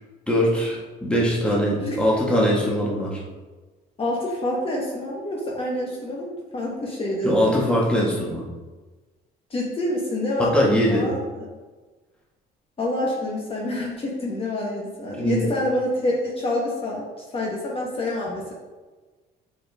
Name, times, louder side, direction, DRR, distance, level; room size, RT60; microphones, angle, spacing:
voice 1, 0.3-3.2 7.2-8.4 10.4-11.1 15.2-15.5, equal, 5° left, -4 dB, 1.7 m, -21 dB
voice 2, 4.0-7.6 9.5-11.3 12.8-17.1 17.3-18.5, left 1 dB, 35° left, -3 dB, 1.3 m, -27 dB
7.5 x 4.4 x 3.6 m, 1.3 s
cardioid pair, 110°, 17 cm